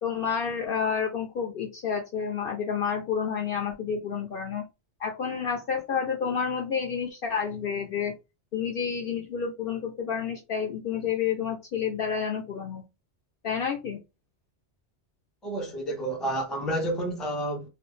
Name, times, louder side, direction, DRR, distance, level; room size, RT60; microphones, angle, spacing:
voice 1, 0.0-4.6 5.0-8.1 8.5-12.8 13.4-14.0, left 7 dB, 60° left, 0.7 m, -29 dB
voice 2, 15.4-17.7, right 1 dB, ahead, 0.6 m, -30 dB
3.0 x 2.5 x 3.0 m
omnidirectional pair, 1.2 m